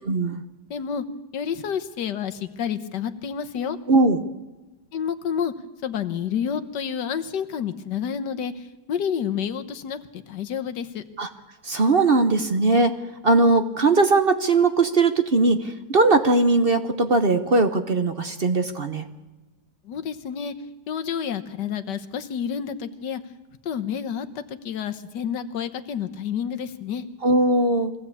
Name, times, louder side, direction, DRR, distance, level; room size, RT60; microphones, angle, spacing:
voice 1, 0.0-0.4 3.9-4.2 11.2-11.3 11.6-12.9 13.2-19.0 27.2-27.9, right 3 dB, 40° right, 8 dB, 1.0 m, -19 dB
voice 2, 0.7-1.0 1.3-3.8 4.9-5.5 5.8-8.5 8.9-11.0 19.9-20.5 20.9-23.2 23.6-27.0, left 8 dB, 90° left, 9 dB, 1.7 m, -29 dB
22.5 x 16.0 x 8.4 m, 1.1 s
omnidirectional pair, 1.8 m